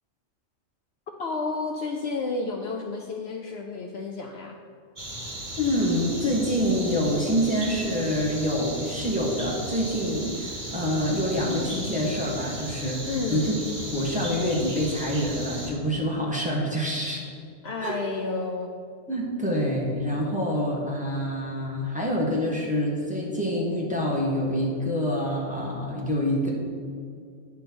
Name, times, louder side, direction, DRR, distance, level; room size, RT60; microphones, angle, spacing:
voice 1, 1.1-4.6 13.1-13.5 17.6-18.7, left 3 dB, 65° left, 3 dB, 0.7 m, -31 dB
sound 1, 5.0-15.7, right 1 dB, 25° right, 1.8 m, -36 dB
voice 2, 5.6-13.6 13.9-17.2 17.8-18.0 19.1-26.5, equal, 5° right, -4 dB, 1.2 m, -26 dB
10.0 x 3.6 x 6.0 m, 2.3 s
omnidirectional pair, 1.3 m